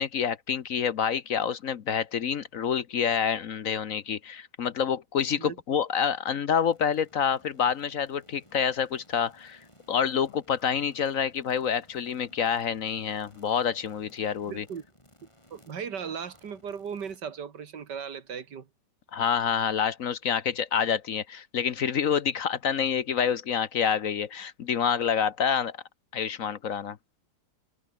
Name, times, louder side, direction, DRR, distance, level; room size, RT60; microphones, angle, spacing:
voice 1, 0.0-9.6 9.9-14.6 19.1-25.8 26.1-27.0, left 7 dB, 55° left, 1.2 m, -27 dB
sound 1, 6.6-17.2, left 1 dB, 15° left, 6.8 m, -59 dB
voice 2, 14.5-14.8 15.5-18.7, right 7 dB, 80° right, 2.4 m, -37 dB
omnidirectional pair, 1.8 m